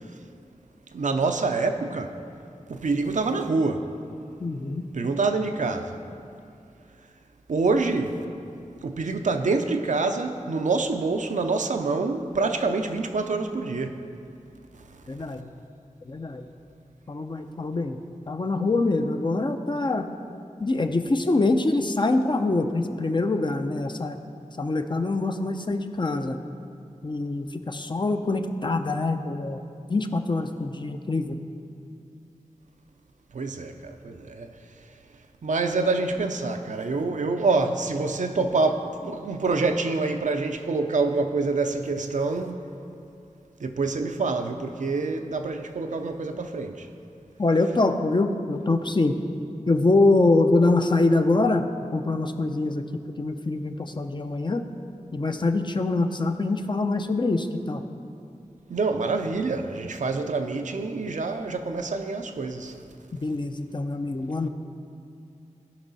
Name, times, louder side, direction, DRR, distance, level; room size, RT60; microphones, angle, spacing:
voice 1, 0.9-2.2 2.7-3.9 4.9-6.0 7.5-8.2 8.8-14.0 14.8-15.2 33.3-34.5 35.4-42.7 43.6-46.9 58.7-62.8, right 3 dB, 70° right, 0.6 m, -26 dB
voice 2, 4.4-4.9 15.1-15.5 16.1-16.4 17.1-18.0 18.3-20.1 20.6-24.2 24.6-26.4 27.0-29.6 29.9-31.4 47.4-49.2 49.7-51.6 51.9-54.6 55.1-57.8 63.2-64.5, left 2 dB, 35° left, 0.6 m, -24 dB
15.5 x 5.3 x 4.1 m
wide cardioid pair, 60°, 13 cm